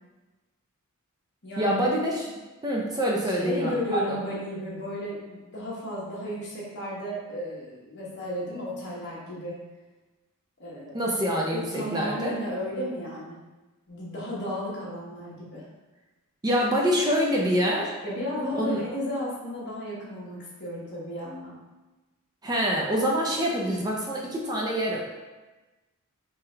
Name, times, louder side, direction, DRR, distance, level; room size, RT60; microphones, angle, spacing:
voice 1, 1.6-2.3 2.6-4.0 10.9-12.4 16.4-17.9 18.5-18.8 22.4-25.0, equal, 20° right, -2 dB, 0.4 m, -26 dB
voice 2, 3.2-9.6 10.6-11.1 11.5-13.4 13.9-15.6 18.0-21.5 23.6-23.8, equal, 50° left, -6 dB, 1.2 m, -34 dB
3.7 x 2.8 x 3.3 m, 1.2 s
head